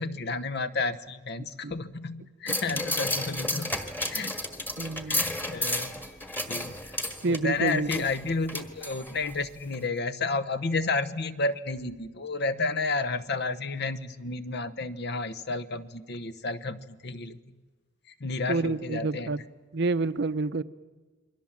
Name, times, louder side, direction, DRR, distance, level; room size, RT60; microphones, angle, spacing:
voice 1, 0.0-3.7 4.1-4.4 5.1-5.9 6.5-7.0 7.2-17.4 18.2-19.3, left 3 dB, 60° left, 13 dB, 1.0 m, -31 dB
sound 1, 2.5-9.4 9.7-9.8, left 1 dB, 10° left, 1.6 m, -32 dB
voice 2, 4.8-5.2 7.2-7.9 18.5-19.4 19.7-20.6, right 3 dB, 60° right, 14 dB, 0.7 m, -28 dB
28.0 x 22.5 x 7.4 m, 1.3 s
head